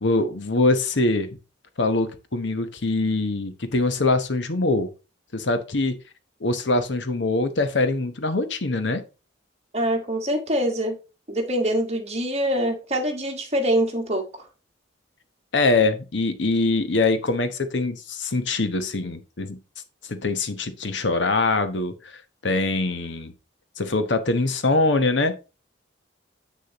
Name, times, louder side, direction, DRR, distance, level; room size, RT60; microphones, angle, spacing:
voice 1, 0.0-1.3 1.8-4.9 5.3-5.9 6.4-9.0 15.5-19.6 20.1-23.3 23.8-25.3, left 2 dB, 65° left, 1.0 m, -23 dB
voice 2, 9.7-11.0 11.3-14.4, right 1 dB, 35° right, 1.7 m, -24 dB
7.6 x 6.7 x 3.0 m
head